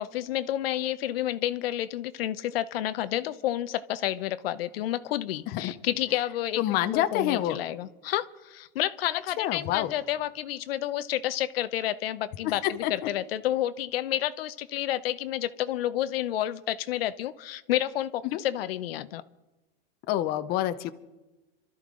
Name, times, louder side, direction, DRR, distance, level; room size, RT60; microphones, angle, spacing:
voice 1, 0.0-19.2, left 13 dB, 80° left, 13 dB, 0.8 m, -30 dB
voice 2, 6.6-7.6 9.4-9.9 12.6-12.9 18.3-18.4 20.1-20.9, left 13 dB, 30° left, 10 dB, 0.7 m, -27 dB
26.5 x 13.0 x 3.8 m, 1.1 s
supercardioid pair, 155°, 29 cm